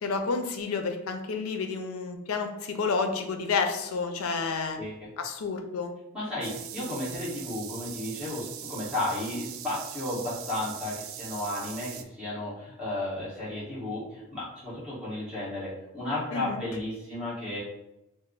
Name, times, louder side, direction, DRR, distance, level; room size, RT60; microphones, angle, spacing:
voice 1, 0.0-4.8 5.2-5.9 6.8-6.9 16.3-16.6, left 4 dB, 80° left, 6 dB, 0.5 m, -30 dB
voice 2, 4.8-5.1 6.1-17.6, left 1 dB, 5° right, -9 dB, 1.2 m, -33 dB
sound 1, 6.4-12.0, right 10 dB, 70° right, 0.3 m, -41 dB
3.3 x 2.0 x 3.8 m, 0.92 s
head